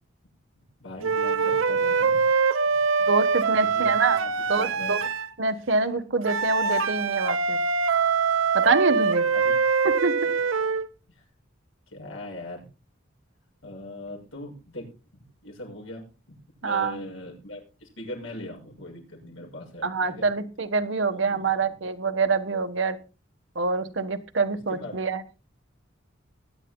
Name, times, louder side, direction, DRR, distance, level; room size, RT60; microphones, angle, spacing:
voice 1, 0.8-2.2 2.7-2.8 3.5-5.0 9.3-9.5 11.1-11.2 11.9-12.6 13.6-14.8 15.4-16.0 16.6-20.3 21.1-21.6 24.7-25.0, left 1 dB, 85° left, 0 dB, 6.7 m, -40 dB
sound 1, 1.0-5.3 6.2-10.9, right 5 dB, 90° right, 0.9 m, -24 dB
voice 2, 3.1-4.2 4.5-5.0 5.4-7.6 8.5-9.3 10.0-10.2 16.6-17.0 19.8-23.0 23.5-25.2, right 4 dB, 65° right, 9 dB, 1.2 m, -25 dB
21.0 x 11.0 x 2.2 m, 0.32 s
head